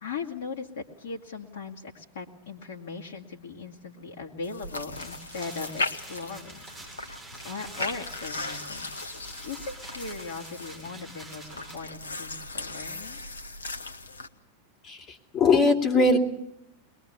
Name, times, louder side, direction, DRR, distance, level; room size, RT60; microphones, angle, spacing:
voice 1, 0.0-6.6 7.4-8.9 9.4-13.2, left 4 dB, 55° left, 0 dB, 2.5 m, -39 dB
sound 1, 4.4-14.3, left 3 dB, 75° left, 1.7 m, -37 dB
sound 2, 4.9-11.8, right 2 dB, 15° right, 8.0 m, -46 dB
voice 2, 14.8-16.2, left 3 dB, 25° left, 3 dB, 3.4 m, -21 dB
22.5 x 21.5 x 7.0 m, 0.80 s
figure-of-eight pair, 90°, 0 cm